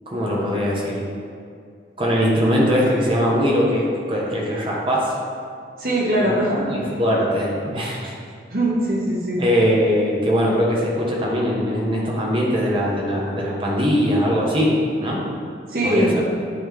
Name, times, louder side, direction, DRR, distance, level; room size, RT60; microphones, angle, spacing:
voice 1, 0.1-1.0 2.0-5.1 6.2-6.3 6.7-8.1 9.4-15.2 15.8-16.3, equal, 30° right, -4 dB, 1.1 m, -21 dB
voice 2, 5.8-6.7 8.5-9.4 15.7-16.1, right 1 dB, 50° right, -4 dB, 1.4 m, -21 dB
9.4 x 4.3 x 3.5 m, 2.3 s
head